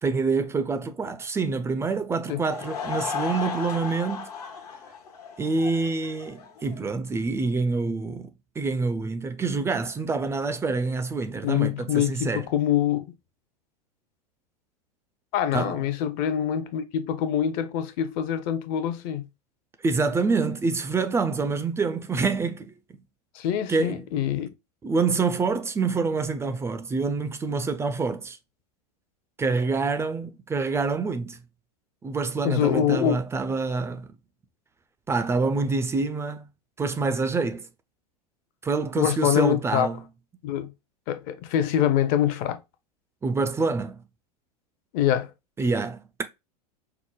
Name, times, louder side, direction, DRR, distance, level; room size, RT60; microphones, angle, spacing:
voice 1, 0.0-4.3 5.4-12.5 15.5-15.8 19.8-22.7 23.7-24.0 24.8-28.4 29.4-31.4 32.0-34.1 35.1-36.5 36.8-37.7 38.6-40.0 43.2-44.0 45.6-46.2, right 4 dB, 15° right, 0.3 m, -26 dB
Laughter / Crowd, 2.3-6.8, left 6 dB, 70° left, 0.9 m, -35 dB
voice 2, 11.4-13.1 15.3-19.2 23.3-24.5 32.4-33.2 39.0-39.9 40.4-40.7 41.1-42.6 44.9-45.3, left 10 dB, 45° left, 0.6 m, -25 dB
4.7 x 2.1 x 2.3 m
hypercardioid pair, 90°, 21 cm